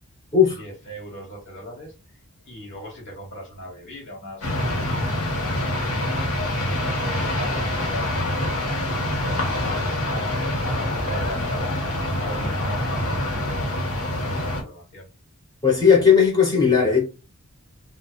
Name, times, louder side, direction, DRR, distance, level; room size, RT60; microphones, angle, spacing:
voice 1, 0.6-1.9 2.4-6.3 6.7-8.7 9.2-11.8 12.2-15.1, equal, 60° left, 1.2 m, -39 dB
sound 1, 4.4-14.6, left 1 dB, 80° left, 0.9 m, -25 dB
voice 2, 15.6-17.0, left 6 dB, 20° left, 1.0 m, -16 dB
2.7 x 2.0 x 2.3 m
head